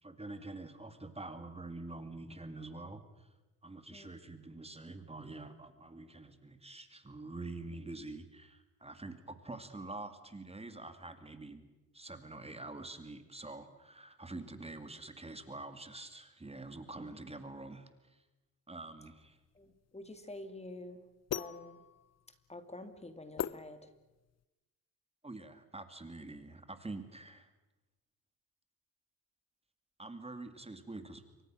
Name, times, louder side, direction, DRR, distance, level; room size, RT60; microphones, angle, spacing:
voice 1, 0.0-3.3 3.6-11.7 11.9-18.2 18.7-19.4 25.2-27.5 30.0-31.2, right 2 dB, 15° right, 9 dB, 2.4 m, -46 dB
sound 1, 19.2-24.4, left 9 dB, 45° left, 0.8 m, -43 dB
voice 2, 19.5-21.0 21.3-21.8 22.5-23.9, left 2 dB, 20° left, 9 dB, 2.5 m, -48 dB
27.5 x 24.0 x 6.4 m, 1.1 s
cardioid pair, 80°, 35 cm